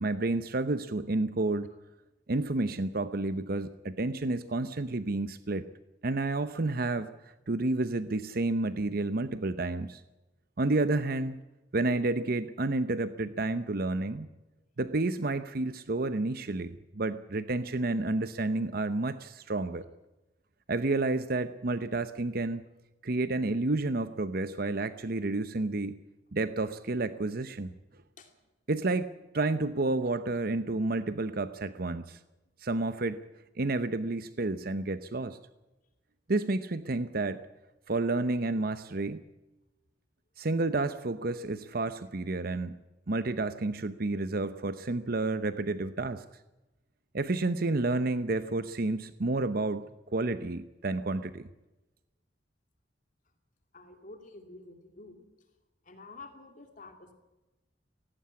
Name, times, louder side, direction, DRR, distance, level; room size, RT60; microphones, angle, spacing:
voice 1, 0.0-1.7 2.3-5.7 6.0-10.0 10.6-11.4 11.7-14.3 14.8-19.9 20.7-22.6 23.0-26.0 26.3-27.7 28.7-29.1 29.3-32.2 32.6-33.2 33.6-35.4 36.3-37.4 37.9-39.2 40.4-42.8 43.1-46.2 47.1-51.4, right 2 dB, 55° right, 12 dB, 0.8 m, -30 dB
voice 2, 53.7-55.2 55.9-57.1, left 2 dB, 45° left, 6 dB, 2.6 m, -49 dB
18.0 x 16.0 x 9.6 m, 1.0 s
head